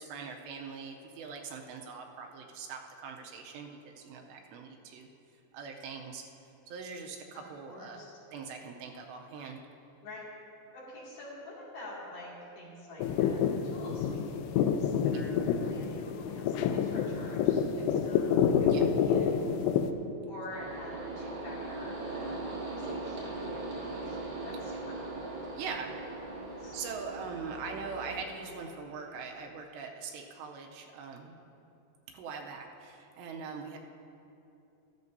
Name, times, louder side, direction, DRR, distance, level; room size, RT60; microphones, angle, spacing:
voice 1, 0.0-5.1 5.5-6.3 6.7-8.0 8.3-9.6 15.1-15.2 18.6-18.9 25.6-25.9 26.7-31.4 32.1-33.8, right 5 dB, 80° right, 2 dB, 2.8 m, -42 dB
voice 2, 7.7-8.2 10.0-10.3 10.7-19.8 20.3-25.4 26.3-26.8, left 1 dB, 60° left, -7 dB, 4.0 m, -48 dB
sound 1, 13.0-19.9, left 7 dB, 80° left, 2.5 m, -28 dB
sound 2, 20.5-28.2, right 2 dB, 35° right, 1.6 m, -39 dB
14.5 x 13.5 x 2.7 m, 2.8 s
omnidirectional pair, 5.2 m